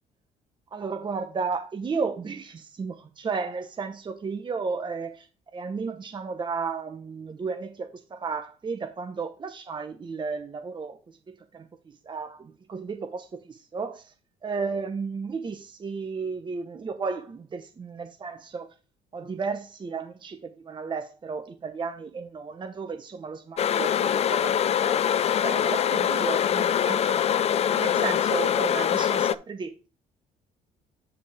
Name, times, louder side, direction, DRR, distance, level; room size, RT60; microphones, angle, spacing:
voice 1, 0.7-5.3 5.5-14.1 14.4-18.7 19.1-25.0 25.3-27.2 27.7-29.9, right 5 dB, 30° right, 0.9 m, -33 dB
sound 1, 23.6-29.3, left 9 dB, 40° left, 0.4 m, -24 dB
8.7 x 5.0 x 3.5 m
cardioid pair, 110°, 17 cm